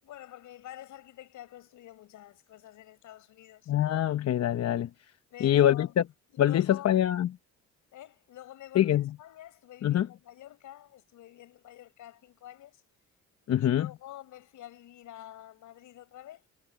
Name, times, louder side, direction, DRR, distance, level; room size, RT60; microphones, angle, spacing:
voice 1, 0.0-3.7 5.3-6.0 6.3-6.9 7.9-12.8 13.6-16.5, left 13 dB, 80° left, 5.1 m, -48 dB
voice 2, 3.7-4.9 5.4-6.0 6.4-7.3 8.7-9.1 9.8-10.1 13.5-13.9, left 11 dB, 55° left, 0.9 m, -24 dB
cardioid pair, 90°, 30 cm